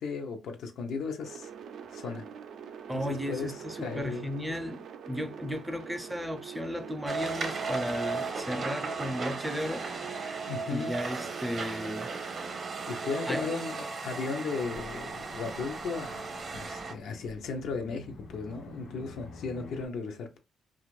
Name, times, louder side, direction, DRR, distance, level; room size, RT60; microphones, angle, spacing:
voice 1, 0.0-1.5 1.9-2.2 2.9-3.5 3.8-4.3 10.5-11.0 12.8-20.4, left 4 dB, 75° left, 0.6 m, -36 dB
sound 1, 1.2-13.6 14.2-16.3, right 7 dB, 70° right, 0.4 m, -46 dB
voice 2, 2.9-9.9 10.7-12.1 13.2-13.5, equal, 5° right, 0.4 m, -35 dB
sound 2, 7.1-16.9, right 4 dB, 45° right, 0.7 m, -36 dB
sound 3, 14.6-19.9, left 2 dB, 90° left, 0.9 m, -49 dB
2.5 x 2.4 x 3.0 m
cardioid pair, 90°, 0 cm